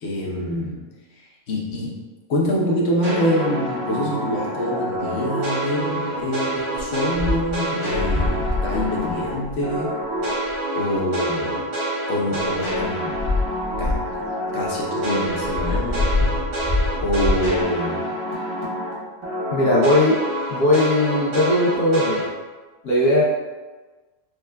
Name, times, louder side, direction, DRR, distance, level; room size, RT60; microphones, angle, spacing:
voice 1, 0.0-0.8 1.2-2.0 2.3-9.9 10.7-11.7 12.1-13.1 13.8-14.0 14.5-16.3 17.0-18.0, equal, 55° left, -3 dB, 0.9 m, -25 dB
sound 1, 3.0-9.3 9.6-18.9 19.2-22.2, equal, 60° right, 1.4 m, -27 dB
sound 2, 7.1-7.6 7.9-9.8 10.5-10.6 12.4-12.8 13.2-14.2 15.3-17.6, left 3 dB, 30° left, 0.5 m, -24 dB
voice 2, 19.5-20.2 20.5-22.2 22.8-23.2, left 1 dB, 90° left, -5 dB, 1.5 m, -18 dB
6.4 x 2.3 x 2.2 m, 1.2 s
omnidirectional pair, 1.6 m